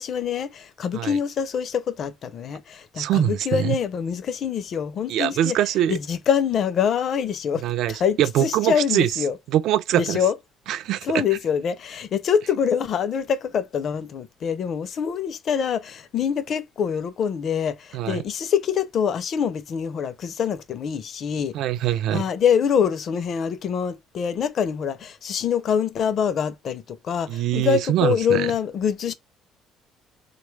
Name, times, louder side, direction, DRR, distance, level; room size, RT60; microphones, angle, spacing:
voice 1, 0.0-5.6 5.9-9.4 9.9-10.3 11.0-21.6 22.1-29.1, left 7 dB, 45° left, 0.5 m, -25 dB
voice 2, 3.0-3.8 5.1-6.0 7.6-9.1 9.5-10.2 10.7-11.2 17.9-18.2 21.5-22.2 27.3-28.5, right 12 dB, 65° right, 0.3 m, -23 dB
3.7 x 2.2 x 3.2 m
cardioid pair, 145°, 0 cm